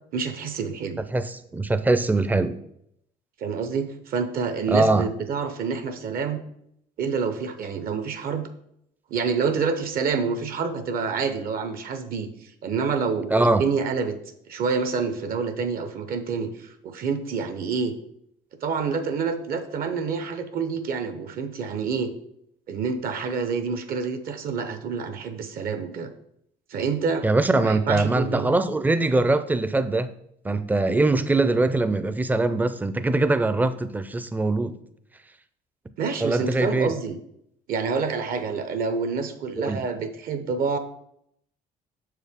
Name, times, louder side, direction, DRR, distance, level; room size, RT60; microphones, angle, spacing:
voice 1, 0.1-1.0 3.4-6.4 7.0-8.5 9.1-14.2 14.5-18.0 18.6-22.1 22.7-26.1 26.7-27.2 27.6-28.5 36.0-37.2 37.7-40.8, right 5 dB, 60° right, 0.7 m, -27 dB
voice 2, 1.1-2.6 4.7-5.1 13.3-13.6 27.2-30.1 30.4-34.7 36.2-36.9 39.6-39.8, right 2 dB, 10° right, 0.4 m, -22 dB
6.5 x 4.7 x 3.5 m
cardioid pair, 110°, 17 cm